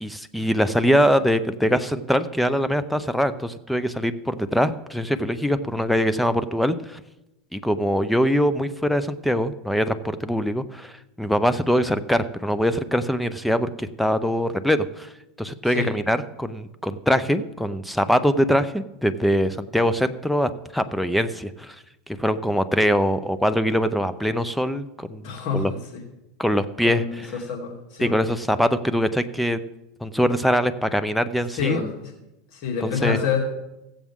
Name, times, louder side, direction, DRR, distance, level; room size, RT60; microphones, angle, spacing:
voice 1, 0.0-7.0 7.5-15.1 15.4-21.8 22.2-25.3 25.5-25.7 26.4-27.3 28.0-29.6 30.0-31.8 32.8-33.2, equal, ahead, 12 dB, 0.6 m, -23 dB
voice 2, 25.2-26.0 26.8-28.1 31.5-32.1 32.5-33.4, left 6 dB, 55° left, -1 dB, 2.7 m, -27 dB
17.0 x 7.3 x 3.6 m, 0.93 s
supercardioid pair, 115°, 0 cm